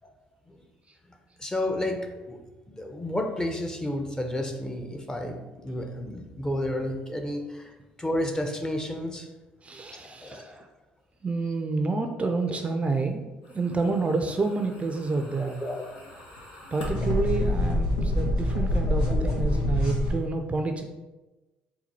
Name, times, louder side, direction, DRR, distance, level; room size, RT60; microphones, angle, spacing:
voice 1, 1.0-9.3 9.9-10.6 13.8-13.9 15.4-15.8 19.1-19.3, left 1 dB, 15° left, 4 dB, 0.7 m, -32 dB
voice 2, 9.6-10.7 11.2-13.2 13.5-15.6 16.7-20.8, right 3 dB, 30° right, 5 dB, 0.4 m, -28 dB
sound 1, 15.0-20.1, left 1 dB, 85° left, 1.0 m, -26 dB
4.1 x 2.2 x 4.2 m, 1.1 s
hypercardioid pair, 60°, 4 cm